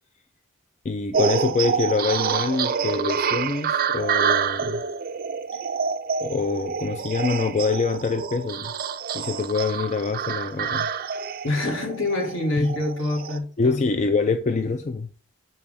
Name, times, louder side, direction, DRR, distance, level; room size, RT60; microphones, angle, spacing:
voice 1, 0.8-4.8 5.5-5.6 6.2-8.7 9.1-10.9 12.6-12.8 13.6-15.2, left 4 dB, 35° left, 0.4 m, -25 dB
sound 1, 1.1-13.4, right 6 dB, 45° right, 0.4 m, -27 dB
voice 2, 11.4-13.8, left 2 dB, 70° left, 2.0 m, -26 dB
6.6 x 4.4 x 3.7 m
head